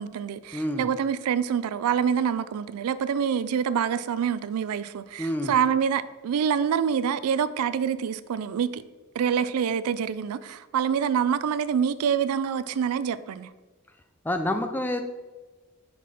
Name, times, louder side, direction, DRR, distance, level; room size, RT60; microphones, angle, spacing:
voice 1, 0.0-8.8 9.1-13.5, right 7 dB, 90° right, 0.3 m, -26 dB
voice 2, 0.5-0.9 5.2-5.5 14.2-15.0, left 1 dB, 10° left, 0.3 m, -27 dB
5.9 x 4.2 x 4.7 m
head